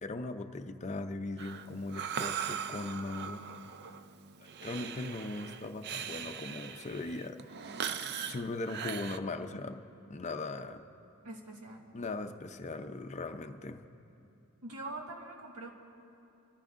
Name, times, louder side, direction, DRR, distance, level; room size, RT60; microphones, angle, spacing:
voice 1, 0.0-3.4 4.6-7.4 8.3-10.8 11.9-13.8, left 2 dB, 30° left, 7 dB, 0.5 m, -39 dB
Breathing, 1.4-9.2, right 7 dB, 50° right, 0.4 m, -40 dB
voice 2, 11.2-11.9 14.6-15.7, right 2 dB, 85° right, 0 dB, 1.8 m, -43 dB
29.0 x 14.0 x 2.5 m, 2.8 s
head